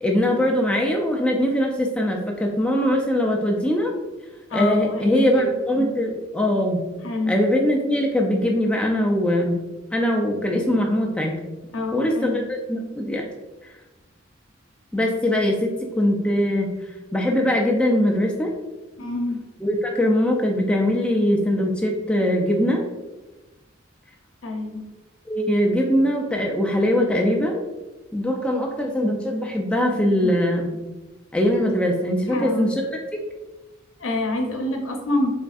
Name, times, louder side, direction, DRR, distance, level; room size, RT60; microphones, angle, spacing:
voice 1, 0.0-3.9 4.5-6.8 7.3-9.6 9.9-11.4 11.9-13.2 14.9-18.5 19.6-22.8 25.3-27.6 28.1-30.7 31.3-33.2, equal, 5° left, 0 dB, 0.3 m, -22 dB
voice 2, 4.5-5.5 5.7-5.9 7.0-7.4 11.7-12.4 19.0-19.4 24.4-24.8 29.8-30.3 32.3-32.7 34.0-35.3, left 2 dB, 85° left, 2 dB, 0.7 m, -27 dB
4.1 x 3.5 x 2.4 m, 1.1 s
head